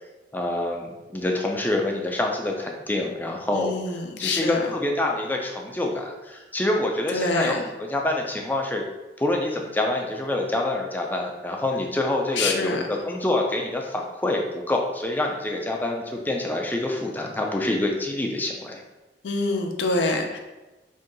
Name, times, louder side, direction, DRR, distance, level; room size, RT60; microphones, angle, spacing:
voice 1, 0.3-3.7 4.2-8.8 9.2-18.8, left 2 dB, 10° left, 1 dB, 0.3 m, -26 dB
voice 2, 3.5-4.7 7.1-7.6 12.3-12.8 19.2-20.4, left 2 dB, 80° left, 4 dB, 0.4 m, -26 dB
2.7 x 2.2 x 3.7 m, 1.1 s
head